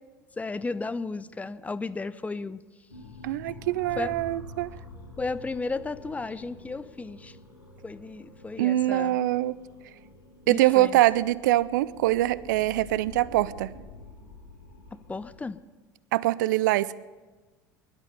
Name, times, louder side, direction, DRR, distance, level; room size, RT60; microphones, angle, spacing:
voice 1, 0.4-2.6 3.5-3.6 4.0-4.1 5.2-7.4 7.8-9.2 10.5-11.0 14.9-15.6, left 3 dB, 15° left, 14 dB, 0.5 m, -34 dB
sound 1, 2.9-15.4, left 2 dB, 85° left, 2.1 m, -47 dB
voice 2, 3.2-4.7 8.6-9.6 10.5-13.7 16.1-17.0, right 15 dB, 60° right, 20 dB, 0.4 m, -24 dB
21.5 x 12.0 x 5.5 m, 1.3 s
figure-of-eight pair, 70°, 11 cm